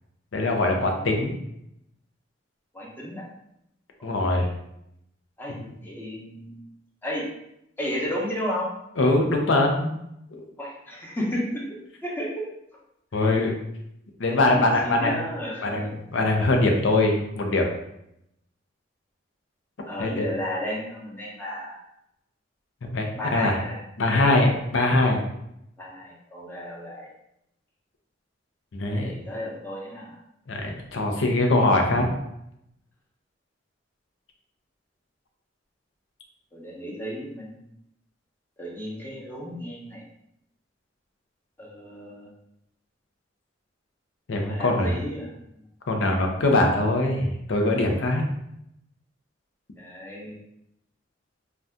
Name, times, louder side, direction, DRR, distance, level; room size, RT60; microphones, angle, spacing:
voice 1, 0.3-1.3 4.0-4.5 5.5-5.7 9.0-10.0 10.3-10.5 13.1-13.5 14.2-15.2 15.6-17.7 20.0-20.2 22.8-23.6 24.0-25.2 28.7-29.1 30.5-32.1 44.3-44.9 45.9-48.2, left 2 dB, 90° left, 2 dB, 0.6 m, -22 dB
voice 2, 2.7-3.3 4.0-4.5 5.4-6.6 7.0-7.2 7.8-8.7 10.6-11.6 12.0-12.4 13.1-13.3 14.3-15.9 19.9-21.8 23.1-24.5 25.8-27.1 28.9-30.2 36.5-37.6 38.6-40.0 41.6-42.3 44.4-45.3 49.8-50.4, equal, 10° left, -4 dB, 0.7 m, -33 dB
2.7 x 2.3 x 3.4 m, 0.80 s
head